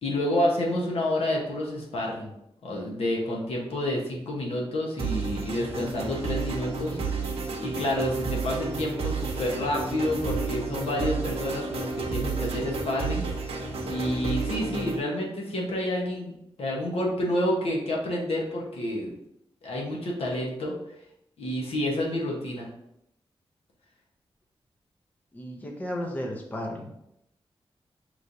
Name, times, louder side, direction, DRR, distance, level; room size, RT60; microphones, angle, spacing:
voice 1, 0.0-2.3 2.6-7.3 7.6-13.2 13.8-19.1 19.6-20.8 21.4-22.7, left 1 dB, 80° left, -2 dB, 0.9 m, -29 dB
sound 1, 5.0-15.0, right 4 dB, 85° right, 0.7 m, -31 dB
voice 2, 25.3-26.9, left 1 dB, 15° left, 1 dB, 0.5 m, -34 dB
5.4 x 3.1 x 2.5 m, 0.80 s
wide cardioid pair, 175°, 10 cm